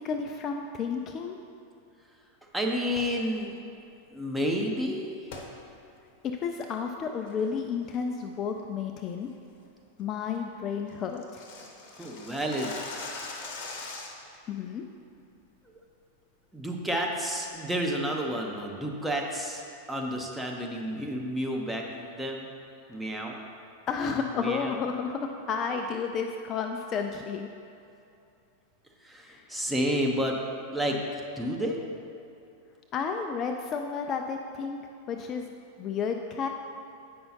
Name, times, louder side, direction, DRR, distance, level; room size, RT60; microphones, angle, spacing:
voice 1, 0.0-1.4 6.4-9.3 10.0-11.4 14.5-14.8 23.9-27.5 29.2-29.4 32.9-34.8 35.1-35.5 35.8-36.5, left 6 dB, 30° left, 4 dB, 0.3 m, -32 dB
voice 2, 2.5-3.6 4.1-5.2 12.0-12.7 15.7-15.8 16.5-19.6 19.9-22.5 22.9-23.4 24.1-24.8 29.0-30.4 30.7-31.8, equal, 5° right, 0 dB, 0.7 m, -30 dB
sound 1, 2.9-3.2 5.3-5.5 6.0-6.1 6.6-6.9 7.3-7.6 7.9-8.2 8.6-8.7 9.1-9.3 9.7-9.8 10.1-10.2 10.4-10.5 10.7-14.4, left 3 dB, 50° left, 0.8 m, -41 dB
8.3 x 5.4 x 2.9 m, 2.6 s
figure-of-eight pair, 90°, 0 cm